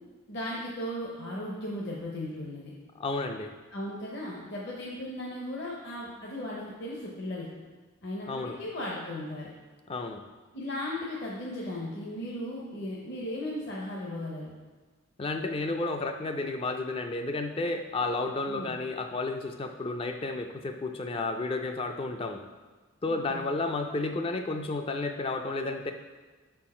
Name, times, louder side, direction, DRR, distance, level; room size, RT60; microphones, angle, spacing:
voice 1, 0.3-2.7 3.7-7.5 8.0-9.5 10.5-14.5 18.5-18.7 23.1-23.4, left 1 dB, 50° left, -4 dB, 0.8 m, -36 dB
voice 2, 3.0-3.5 8.3-8.6 9.9-10.2 15.2-22.4 23.0-25.9, left 3 dB, 25° left, 6 dB, 0.3 m, -32 dB
6.2 x 4.5 x 4.2 m, 1.3 s
head